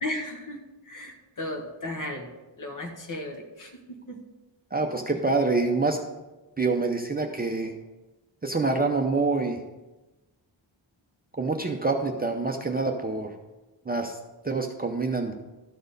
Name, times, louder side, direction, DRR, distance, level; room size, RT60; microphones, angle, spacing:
voice 1, 0.0-2.3 2.6-4.2 5.1-5.2, left 1 dB, 45° left, 3 dB, 1.4 m, -35 dB
voice 2, 4.7-6.0 6.6-7.7 8.4-9.6 11.4-13.3 13.9-14.2 14.4-15.3, right 3 dB, 20° right, 3 dB, 0.5 m, -26 dB
12.5 x 4.3 x 5.2 m, 1.1 s
wide cardioid pair, 155°, 44 cm